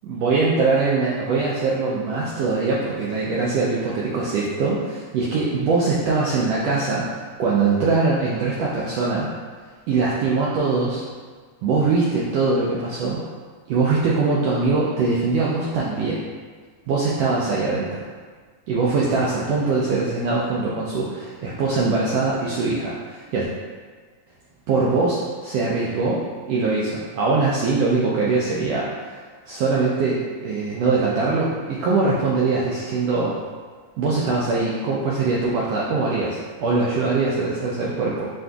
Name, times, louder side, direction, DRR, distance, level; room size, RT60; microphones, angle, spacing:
voice 1, 0.1-7.1 7.4-9.3 9.9-11.0 11.6-13.2 13.7-16.2 16.9-18.1 18.7-23.5 24.7-29.1 29.5-33.4 34.0-38.3, right 3 dB, 85° right, -5 dB, 1.4 m, -22 dB
7.3 x 2.6 x 2.3 m, 1.5 s
omnidirectional pair, 3.4 m